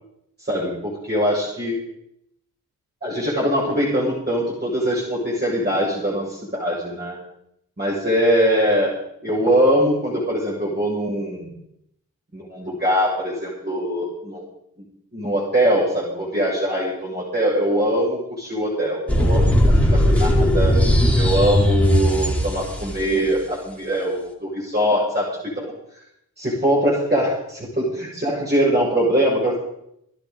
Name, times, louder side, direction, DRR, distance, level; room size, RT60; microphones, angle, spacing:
voice 1, 0.4-1.8 3.0-7.2 7.8-8.9 9.2-11.5 12.3-14.4 15.1-19.5 19.9-20.8 21.1-25.7 26.4-29.6, equal, 30° right, -5 dB, 6.9 m, -22 dB
sound 1, 19.1-23.0, equal, 5° left, 4.0 m, -18 dB
19.5 x 11.5 x 5.3 m, 0.77 s
cardioid pair, 45°, 35 cm